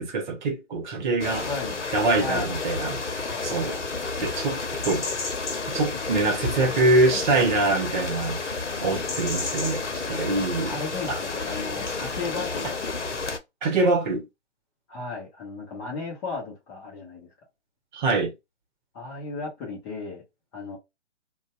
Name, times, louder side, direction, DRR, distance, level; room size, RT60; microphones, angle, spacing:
voice 1, 0.0-1.5 1.9-3.0 3.4-3.8 4.2-4.6 4.8-5.1 5.7-10.7 11.1-11.2 13.6-14.3 17.9-18.3, right 2 dB, 40° right, 1.0 m, -24 dB
sound 1, 1.2-13.4, left 3 dB, 80° left, 0.8 m, -31 dB
voice 2, 1.4-1.7 2.2-2.5 3.2-4.0 6.3-6.7 7.1-7.3 8.7-9.2 10.6-12.8 14.9-17.3 18.9-20.2 20.5-20.8, left 4 dB, 15° left, 0.7 m, -35 dB
2.6 x 2.2 x 2.3 m
figure-of-eight pair, 130°, 35 cm